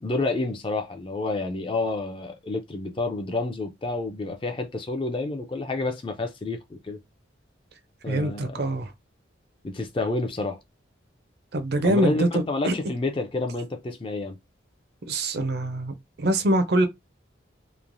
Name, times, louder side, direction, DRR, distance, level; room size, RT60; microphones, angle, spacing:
voice 1, 0.0-7.0 8.0-8.6 9.6-10.6 11.8-14.4, left 2 dB, 25° left, 0.4 m, -29 dB
voice 2, 8.1-8.9 11.5-12.7 15.1-16.9, right 1 dB, 55° right, 0.5 m, -24 dB
3.1 x 2.0 x 2.5 m
head